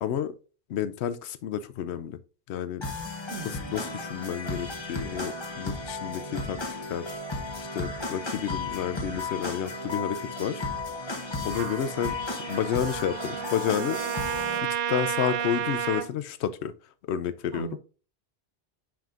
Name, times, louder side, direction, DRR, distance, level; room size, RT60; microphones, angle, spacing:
voice 1, 0.0-0.3 0.7-2.2 2.5-2.8 3.7-6.6 6.9-7.2 7.6-10.6 11.4-14.0 14.6-16.7 17.1-17.8, left 9 dB, 75° left, 13 dB, 0.8 m, -30 dB
sound 1, 2.8-14.6, left 2 dB, 25° left, 1.0 m, -34 dB
voice 2, 3.3-3.7 17.5-17.8, right 6 dB, 80° right, 5 dB, 1.2 m, -39 dB
Trumpet, 11.6-16.1, right 9 dB, 60° right, 0.6 m, -32 dB
9.1 x 4.9 x 2.5 m, 0.36 s
omnidirectional pair, 1.1 m